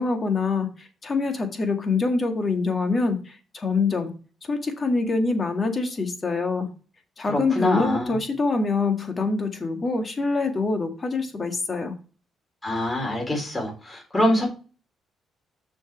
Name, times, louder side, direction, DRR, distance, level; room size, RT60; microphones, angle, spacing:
voice 1, 0.0-4.1 4.4-6.7 7.2-11.9, left 3 dB, 35° left, 5 dB, 1.8 m, -25 dB
voice 2, 7.3-8.2 12.6-14.5, left 1 dB, 20° left, 1 dB, 3.7 m, -24 dB
6.4 x 6.4 x 4.5 m, 0.35 s
cardioid pair, 90°, 0 cm